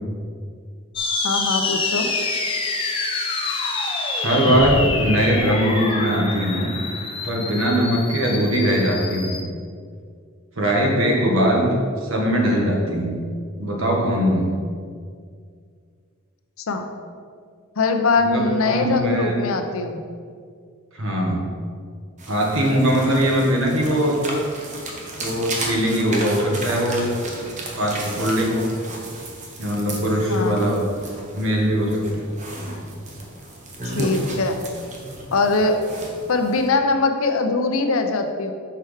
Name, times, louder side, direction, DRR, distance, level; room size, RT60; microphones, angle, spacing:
sound 1, 1.0-9.4, left 3 dB, 25° left, 0.6 m, -26 dB
voice 1, 1.2-2.1 16.7-16.9 17.8-20.0 30.3-30.7 34.0-34.6 35.3-35.8 36.3-38.5, left 3 dB, 80° left, 6 dB, 0.6 m, -21 dB
voice 2, 4.1-6.7 7.2-9.4 10.5-11.7 12.0-13.2 13.6-14.5 18.2-19.3 20.9-21.4 22.3-24.2 25.2-27.1 27.7-28.6 29.6-30.8 31.3-32.2, equal, 70° right, -1 dB, 1.4 m, -21 dB
sound 2, 22.2-36.7, right 1 dB, 35° right, 0.9 m, -34 dB
5.9 x 4.5 x 4.9 m, 2.1 s
head